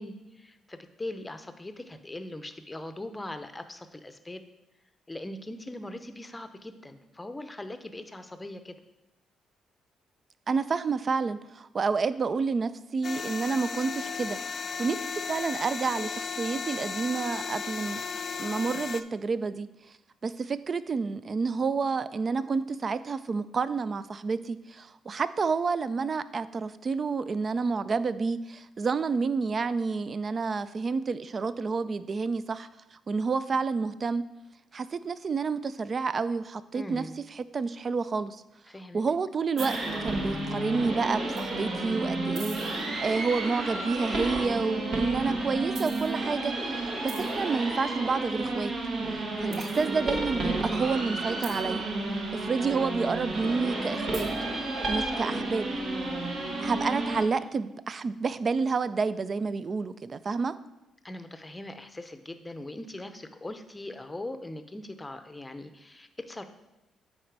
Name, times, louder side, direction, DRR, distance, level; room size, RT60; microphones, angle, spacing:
voice 1, 0.0-4.4 5.1-8.8 36.7-37.2 38.7-39.0 49.4-49.7 61.0-66.4, left 1 dB, 15° left, 9 dB, 0.7 m, -40 dB
voice 2, 10.5-14.4 14.8-18.0 18.4-19.7 20.2-34.2 34.7-37.0 37.4-38.4 38.9-39.8 40.0-48.7 49.1-51.8 52.3-54.3 54.9-55.7 56.6-60.5, right 4 dB, 40° right, 14 dB, 0.4 m, -29 dB
sound 1, 13.0-19.0, left 5 dB, 45° left, 0.4 m, -35 dB
sound 2, 39.6-57.2, right 2 dB, 60° right, 1.3 m, -31 dB
9.0 x 4.2 x 4.7 m, 0.95 s
cardioid pair, 90°, 0 cm